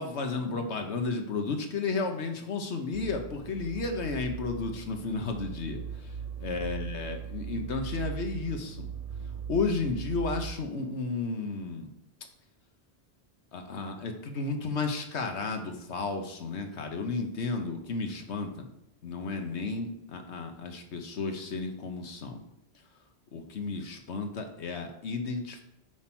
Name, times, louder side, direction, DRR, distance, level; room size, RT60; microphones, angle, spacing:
voice 1, 0.0-6.1 6.4-8.9 9.5-11.9 13.5-18.7 19.0-22.4 23.3-25.6, left 4 dB, 85° left, 5 dB, 1.3 m, -33 dB
sound 1, 2.9-10.5, right 7 dB, 55° right, 0.4 m, -39 dB
8.0 x 4.5 x 6.0 m, 0.80 s
omnidirectional pair, 1.1 m